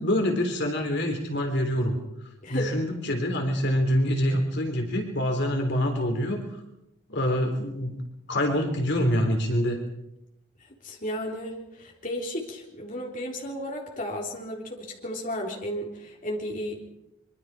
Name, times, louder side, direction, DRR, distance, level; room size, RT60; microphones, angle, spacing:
voice 1, 0.0-2.0 2.5-6.4 7.1-8.0 8.3-9.8, equal, 55° left, 3 dB, 3.6 m, -25 dB
voice 2, 2.4-2.7 10.8-16.9, equal, 40° left, -1 dB, 3.8 m, -34 dB
24.5 x 24.5 x 5.0 m, 0.87 s
head